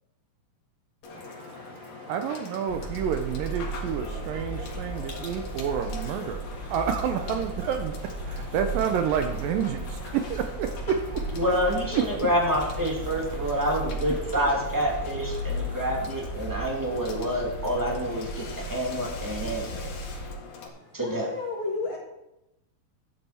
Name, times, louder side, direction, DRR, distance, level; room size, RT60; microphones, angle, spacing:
Water / Water tap faucet / Sink (filling or washing), 1.0-20.7, left 4 dB, 85° left, 3.8 m, -43 dB
voice 1, 1.1-11.4 11.9-12.3 13.1-13.8 14.0-14.4 15.4-15.9, right 8 dB, 75° right, 6 dB, 2.2 m, -30 dB
sound 1, 2.7-20.3, right 1 dB, 20° left, 3.7 m, -36 dB
voice 2, 11.3-18.4 18.7-19.9 20.9-21.3, equal, 5° right, -2 dB, 1.7 m, -27 dB
voice 3, 20.7-22.0, left 3 dB, 40° left, -3 dB, 2.6 m, -32 dB
12.0 x 10.0 x 4.4 m, 0.89 s
omnidirectional pair, 4.3 m